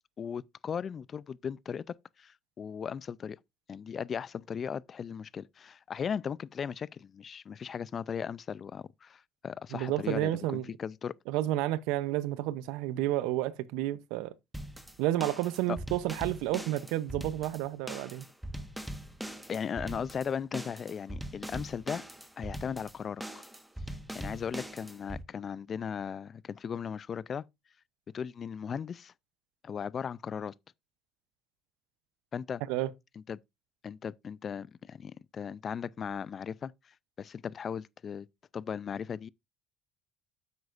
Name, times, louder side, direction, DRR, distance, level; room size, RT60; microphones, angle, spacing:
voice 1, 0.2-3.4 3.7-10.3 10.8-11.1 15.7-15.8 19.5-22.0 22.4-23.2 24.1-27.4 28.1-29.1 29.6-30.5 32.3-32.6 33.3-33.4 33.8-36.7 37.2-38.3 38.5-39.3, left 7 dB, 40° left, 0.4 m, -37 dB
voice 2, 9.7-10.6 11.3-14.3 15.0-18.2 32.7-32.9, right 14 dB, 80° right, 0.6 m, -31 dB
sound 1, 14.5-25.2, right 1 dB, 5° right, 1.3 m, -41 dB
9.6 x 7.9 x 2.5 m
supercardioid pair, 95°, 0 cm